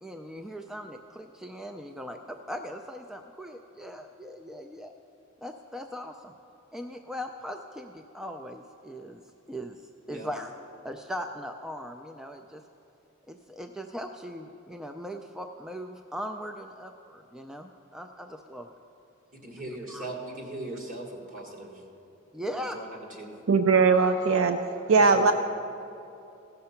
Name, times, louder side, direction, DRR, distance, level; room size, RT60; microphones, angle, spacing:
voice 1, 0.0-4.9 5.4-6.3 6.7-9.2 9.5-9.8 10.1-10.5 10.8-12.6 13.3-18.8 19.9-20.1 22.3-22.8, equal, 5° right, 5 dB, 0.3 m, -39 dB
voice 2, 19.3-21.8 22.5-23.3 24.9-25.3, right 1 dB, 40° right, 0 dB, 1.7 m, -39 dB
voice 3, 23.5-24.6 24.9-25.3, right 4 dB, 70° right, 8 dB, 0.4 m, -20 dB
16.0 x 6.6 x 5.7 m, 2.9 s
head